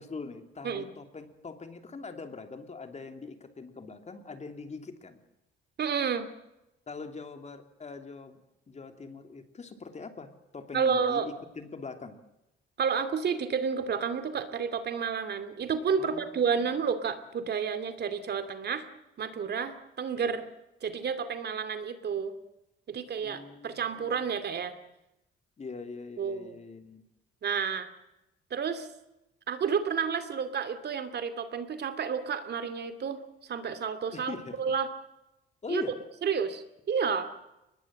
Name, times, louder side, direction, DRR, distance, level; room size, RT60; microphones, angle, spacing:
voice 1, 0.0-5.2 6.9-8.4 8.7-12.2 16.0-16.8 23.2-24.4 25.6-27.0 34.1-34.6 35.6-36.0, left 4 dB, 35° left, 7 dB, 3.0 m, -42 dB
voice 2, 5.8-6.3 10.7-11.3 12.8-18.9 19.2-20.4 20.8-22.3 22.9-24.8 26.2-26.6 27.4-27.9 28.5-28.9 29.5-33.2 33.5-34.9 35.7-35.8 36.2-37.3, right 6 dB, 55° right, 9 dB, 2.6 m, -30 dB
22.5 x 20.5 x 7.7 m, 0.91 s
cardioid pair, 90°, 20 cm